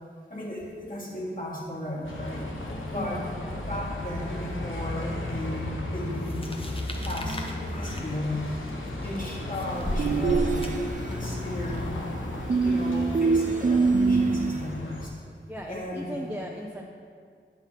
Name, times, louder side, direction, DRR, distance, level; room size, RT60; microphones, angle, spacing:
voice 1, 0.3-2.4 2.9-3.2 3.7-6.6 7.0-7.4 7.7-8.4 8.9-10.5 11.1-12.0 12.6-15.1 15.7-16.2, left 1 dB, 45° left, -5 dB, 2.0 m, -35 dB
Bus, 2.0-15.1, left 1 dB, 90° left, 0.9 m, -34 dB
voice 2, 2.9-3.6 9.1-9.4 15.5-16.8, equal, 5° right, -2 dB, 0.7 m, -37 dB
sound 1, 6.2-11.4, equal, 30° left, 0.9 m, -35 dB
sound 2, 10.0-11.3 12.5-14.7, right 4 dB, 40° right, 0.4 m, -24 dB
8.7 x 4.2 x 5.6 m, 2.1 s
wide cardioid pair, 55°, 20 cm